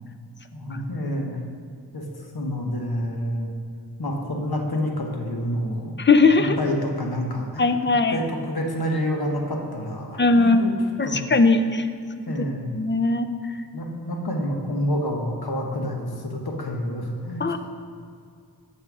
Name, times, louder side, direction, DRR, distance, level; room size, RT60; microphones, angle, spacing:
voice 1, 0.5-1.4 1.9-3.5 4.0-5.9 6.4-7.7 8.1-10.7 11.0-11.2 12.3-12.8 13.7-17.6, equal, 70° left, 1 dB, 1.2 m, -28 dB
voice 2, 6.0-6.6 7.6-8.2 10.2-10.7 11.0-11.9 12.7-13.6 17.4-17.6, left 3 dB, 30° left, 9 dB, 0.5 m, -19 dB
6.4 x 5.7 x 6.1 m, 2.3 s
wide cardioid pair, 70°, 39 cm